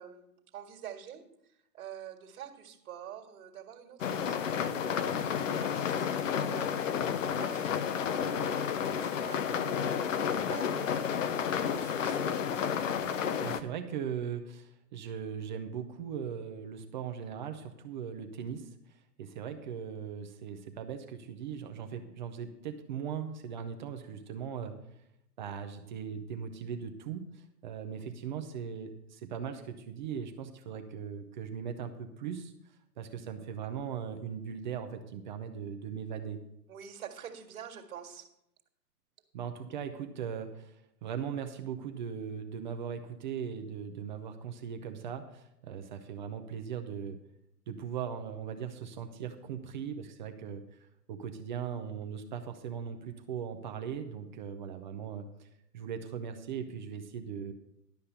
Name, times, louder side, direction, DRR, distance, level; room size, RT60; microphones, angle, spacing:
voice 1, 0.0-10.0 10.3-11.1 11.6-12.5 36.7-38.3, right 9 dB, 60° right, 3 dB, 2.0 m, -47 dB
sound 1, 4.0-13.6, left 8 dB, 50° left, 0.9 m, -31 dB
voice 2, 13.4-24.7 25.4-32.5 33.0-36.4 39.3-47.2 47.7-50.8 51.1-55.5 55.7-57.5, right 7 dB, 30° right, 5 dB, 0.7 m, -39 dB
12.0 x 5.5 x 6.7 m, 0.80 s
hypercardioid pair, 140°, 49 cm